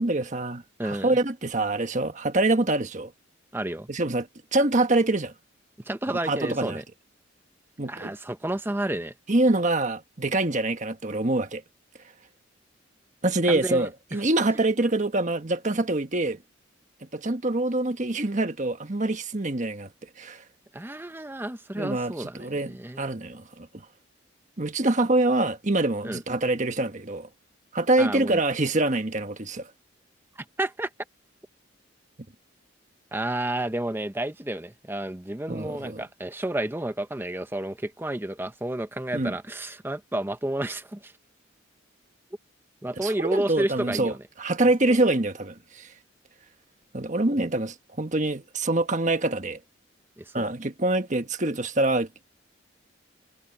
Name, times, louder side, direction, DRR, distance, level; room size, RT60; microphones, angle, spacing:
voice 1, 0.0-3.1 3.9-5.3 6.1-6.8 7.8-8.1 9.3-11.6 13.2-16.4 17.1-19.9 20.2-20.4 21.7-23.7 24.6-27.3 27.7-29.7 35.5-36.0 39.1-39.4 43.0-45.9 46.9-49.6 50.3-52.2, right 2 dB, 40° right, 1.4 m, -25 dB
voice 2, 0.8-1.1 3.5-3.9 5.9-6.8 7.9-9.1 13.5-13.9 20.7-23.1 26.0-26.2 28.0-28.4 30.6-30.9 33.1-41.1 42.8-44.2 44.8-44.9 50.2-50.4, right 1 dB, 10° right, 0.7 m, -31 dB
head